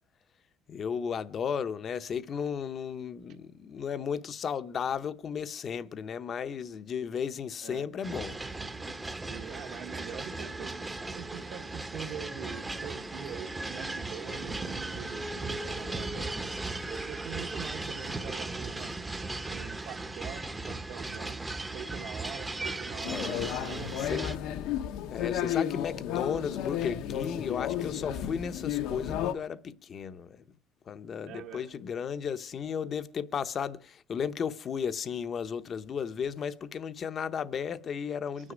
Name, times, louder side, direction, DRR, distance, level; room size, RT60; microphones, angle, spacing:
voice 1, 0.7-8.4 23.1-23.5 24.0-24.2 25.1-30.4 30.9-38.5, left 7 dB, 30° left, 0.7 m, -34 dB
sound 1, 8.0-24.4, right 2 dB, 10° right, 0.8 m, -37 dB
voice 2, 9.3-10.7 11.1-16.4 16.9-18.9 19.5-21.4 21.7-23.9 31.2-31.7 38.4-38.5, right 9 dB, 60° right, 1.3 m, -44 dB
sound 2, 23.0-29.3, left 10 dB, 75° left, 1.0 m, -33 dB
24.0 x 9.9 x 5.0 m
cardioid pair, 165°, 0 cm